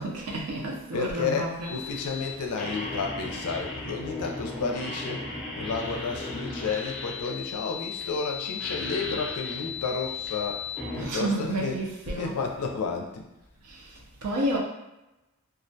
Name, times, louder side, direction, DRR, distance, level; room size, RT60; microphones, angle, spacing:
voice 1, 0.0-2.0 10.9-12.4 13.7-14.6, right 1 dB, 80° right, -2 dB, 0.5 m, -31 dB
voice 2, 0.9-5.3 5.6-11.8 12.1-13.3, left 4 dB, 90° left, 3 dB, 0.4 m, -31 dB
sound 1, 1.6-11.0, left 4 dB, 5° left, 0.4 m, -36 dB
2.3 x 2.1 x 2.6 m, 0.94 s
head